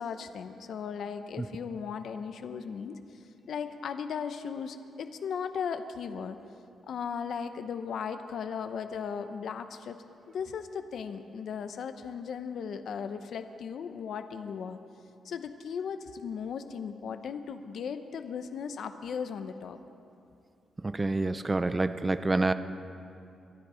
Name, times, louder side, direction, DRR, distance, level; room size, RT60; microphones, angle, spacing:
voice 1, 0.0-3.0 3.5-6.4 6.9-10.0 10.3-14.8 15.2-19.8, left 6 dB, 60° left, 8 dB, 0.8 m, -37 dB
voice 2, 20.8-22.5, right 2 dB, 15° right, 12 dB, 0.5 m, -27 dB
23.0 x 12.5 x 5.0 m, 2.6 s
wide cardioid pair, 170°, 0 cm